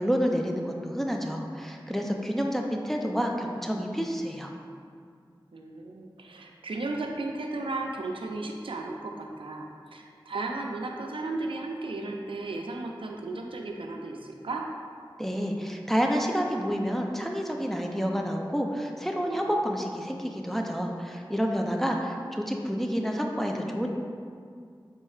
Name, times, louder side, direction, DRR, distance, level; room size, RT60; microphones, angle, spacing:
voice 1, 0.0-4.5 15.2-23.9, equal, 5° left, 1 dB, 0.3 m, -29 dB
voice 2, 5.5-14.7, right 2 dB, 90° right, 1 dB, 0.3 m, -35 dB
4.2 x 3.6 x 2.3 m, 2.2 s
wide cardioid pair, 60°, 9 cm